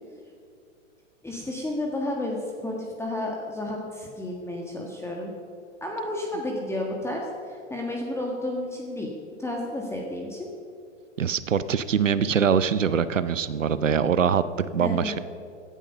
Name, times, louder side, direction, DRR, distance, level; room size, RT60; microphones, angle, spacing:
voice 1, 1.2-5.3 5.8-9.1 9.4-10.5 14.8-15.1, left 1 dB, 5° left, -1 dB, 1.6 m, -31 dB
voice 2, 11.2-14.4 14.7-15.2, right 7 dB, 85° right, 15 dB, 0.7 m, -23 dB
16.5 x 11.0 x 5.4 m, 2.4 s
figure-of-eight pair, 100°, 37 cm